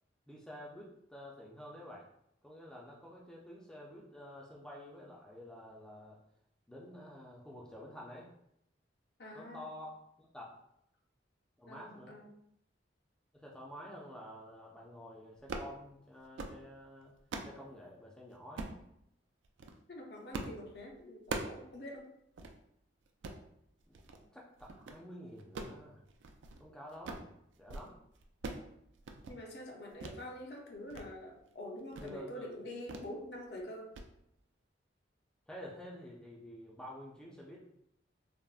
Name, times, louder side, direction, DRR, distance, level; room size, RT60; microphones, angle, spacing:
voice 1, 0.3-2.1 2.4-6.2 6.7-8.3 9.3-10.5 11.6-12.1 13.3-17.1 17.4-18.7 23.9-24.0 24.2-26.0 26.6-28.0 32.0-32.6 35.5-37.6, equal, 5° left, -4 dB, 0.3 m, -49 dB
voice 2, 9.2-9.7 11.7-12.3 19.9-22.1 29.3-33.9, left 1 dB, 60° left, 1 dB, 0.5 m, -46 dB
sound 1, 15.4-15.7 16.2-16.6 17.0-17.6 18.6-18.8 19.4-19.8 20.3-20.6 20.9-21.6 22.0-22.1 22.4-22.5 23.1-23.4 23.9-24.2 24.6-25.0 25.4-26.6 26.9-27.3 27.6-27.9 28.1-28.7 29.0-29.4 30.0-30.2 30.6-31.1 31.4-31.5 31.9-32.2 32.9-33.1 33.4-33.6 33.9-34.1, right 3 dB, 80° right, 0.3 m, -42 dB
3.4 x 2.0 x 2.3 m, 0.76 s
head